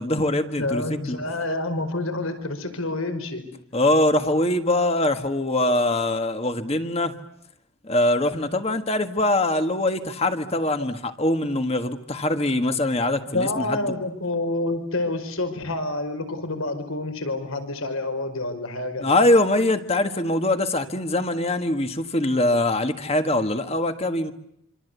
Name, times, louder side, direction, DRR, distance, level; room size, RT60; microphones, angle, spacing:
voice 1, 0.0-1.2 3.7-7.1 7.8-13.6 19.0-24.3, left 1 dB, 25° left, 8 dB, 1.6 m, -23 dB
voice 2, 0.6-3.4 13.3-19.1, left 2 dB, 70° left, 8 dB, 5.1 m, -28 dB
26.5 x 26.5 x 8.2 m, 0.74 s
head